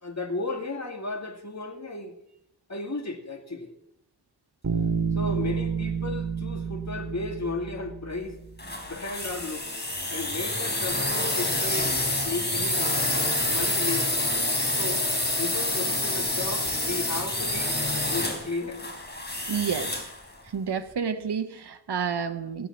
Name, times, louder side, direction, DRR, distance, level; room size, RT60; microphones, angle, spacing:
voice 1, 0.0-2.2 2.7-3.7 5.1-8.4 8.8-9.8 10.1-12.0 12.2-13.1 13.5-14.1 14.8-15.1 15.4-17.8 18.1-18.8, left 2 dB, 45° left, 4 dB, 2.2 m, -34 dB
Bass guitar, 4.6-8.3, right 6 dB, 45° right, 2.4 m, -29 dB
sound 1, 8.6-20.2, left 1 dB, 25° left, 3.9 m, -27 dB
voice 2, 19.5-19.9 20.5-22.7, right 7 dB, 90° right, 10 dB, 1.0 m, -29 dB
15.5 x 9.1 x 7.2 m, 0.80 s
wide cardioid pair, 60°, 39 cm